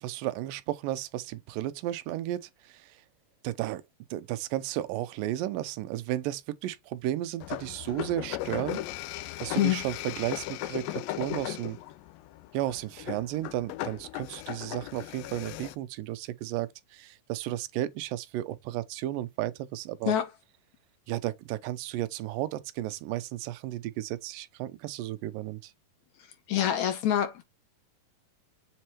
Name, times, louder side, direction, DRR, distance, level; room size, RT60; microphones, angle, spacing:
voice 1, 0.0-3.0 3.4-3.8 4.1-8.8 9.4-11.8 12.5-20.1 21.1-25.7, right 14 dB, 85° right, 2.3 m, -33 dB
sound 1, 7.4-15.7, left 15 dB, 85° left, 2.3 m, -37 dB
voice 2, 26.5-27.4, left 10 dB, 70° left, 1.8 m, -26 dB
7.5 x 4.3 x 2.8 m
omnidirectional pair, 4.0 m